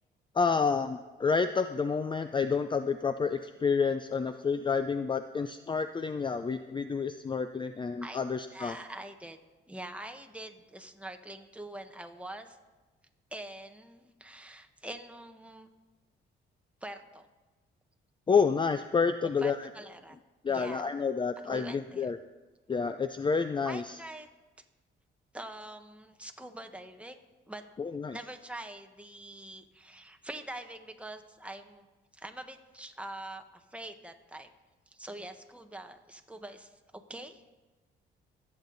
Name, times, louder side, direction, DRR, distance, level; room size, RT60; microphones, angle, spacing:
voice 1, 0.3-8.8 18.3-19.7 20.4-22.2 22.7-24.0 27.8-28.2, left 5 dB, 25° left, 10 dB, 0.5 m, -29 dB
voice 2, 8.0-9.4 9.7-12.6 13.3-15.7 16.8-17.3 19.4-20.2 20.5-20.8 21.5-22.1 23.6-24.3 25.3-27.2 27.5-27.6 28.1-31.9 32.1-34.5 34.9-37.5, right 1 dB, 5° right, 5 dB, 1.3 m, -44 dB
25.0 x 8.7 x 4.0 m, 1.2 s
cardioid pair, 90°, 20 cm